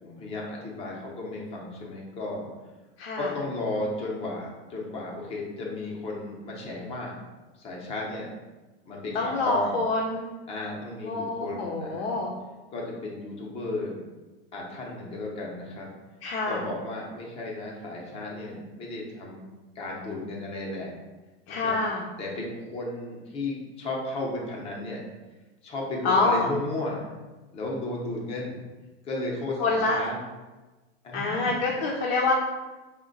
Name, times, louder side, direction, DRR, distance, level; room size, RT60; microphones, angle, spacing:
voice 1, 0.0-2.5 3.2-7.2 7.6-8.3 8.9-9.8 10.5-12.2 12.7-14.0 14.5-15.9 16.5-19.4 19.8-20.9 21.5-21.7 22.2-25.0 25.6-27.1 27.5-28.6 29.0-30.2 31.0-31.6, left 2 dB, 20° left, -2 dB, 0.6 m, -34 dB
voice 2, 3.0-3.3 9.1-10.2 11.0-12.3 16.2-16.6 21.5-22.0 26.0-26.5 29.6-30.0 31.1-32.3, left 3 dB, 90° left, -2 dB, 0.7 m, -26 dB
4.2 x 2.2 x 3.8 m, 1.2 s
supercardioid pair, 160°, 31 cm